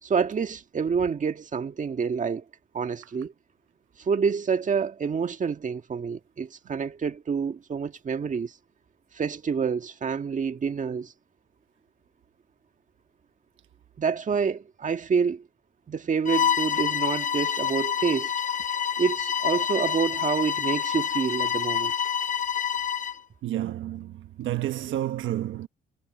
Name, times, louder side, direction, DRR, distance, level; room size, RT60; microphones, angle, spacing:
voice 1, 0.0-2.4 2.7-3.3 4.0-8.6 9.1-11.1 14.0-15.4 15.9-18.3 19.0-21.9, right 6 dB, 40° right, 1.6 m, -27 dB
Bowed string instrument, 16.2-23.2, left 8 dB, 40° left, 1.0 m, -27 dB
voice 2, 23.4-25.7, right 13 dB, 80° right, 1.2 m, -30 dB
cardioid pair, 90°, 20 cm